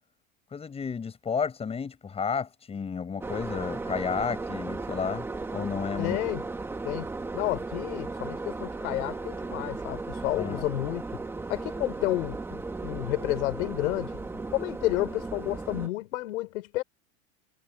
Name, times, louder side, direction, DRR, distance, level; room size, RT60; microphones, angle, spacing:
voice 1, 0.5-5.3 5.5-6.2 10.4-10.7, left 6 dB, 15° left, 7.0 m, -32 dB
sound 1, 3.2-15.9, right 3 dB, 5° right, 1.0 m, -36 dB
voice 2, 6.0-6.4 6.8-7.1 7.3-11.0 11.5-14.1 14.5-16.8, left 18 dB, 75° left, 3.8 m, -30 dB
supercardioid pair, 165°, 41 cm